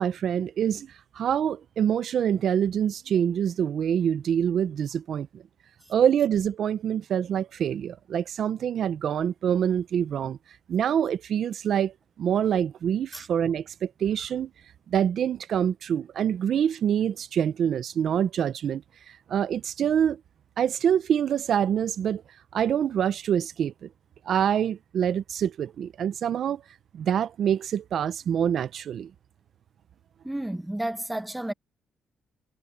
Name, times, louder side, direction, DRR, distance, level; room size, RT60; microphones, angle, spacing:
voice 1, 0.0-5.4 5.9-10.4 10.7-14.5 14.9-20.2 20.6-22.2 22.5-23.9 24.3-26.6 26.9-29.1, right 9 dB, 65° right, 0.6 m, -26 dB
voice 2, 30.2-31.5, right 1 dB, 10° right, 1.0 m, -31 dB
cardioid pair, 100°, 0 cm